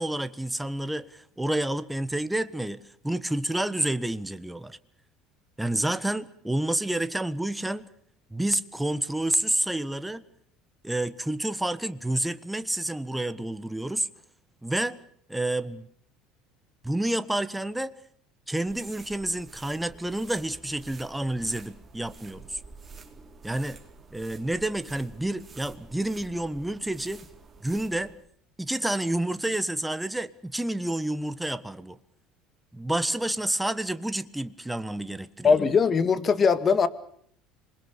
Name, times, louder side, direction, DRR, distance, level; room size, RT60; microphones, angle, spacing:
voice 1, 0.0-4.8 5.6-7.8 8.3-10.2 10.8-14.1 14.6-15.0 15.3-15.9 16.8-18.0 18.5-22.6 23.4-23.8 24.1-27.3 27.6-28.1 28.6-32.0 32.7-35.6, right 1 dB, 5° right, 13 dB, 1.4 m, -29 dB
sound 1, 18.7-28.2, right 4 dB, 25° right, 4.4 m, -49 dB
voice 2, 35.4-36.9, left 5 dB, 35° left, 13 dB, 2.1 m, -20 dB
26.5 x 21.5 x 6.8 m, 0.64 s
hypercardioid pair, 75°, 0 cm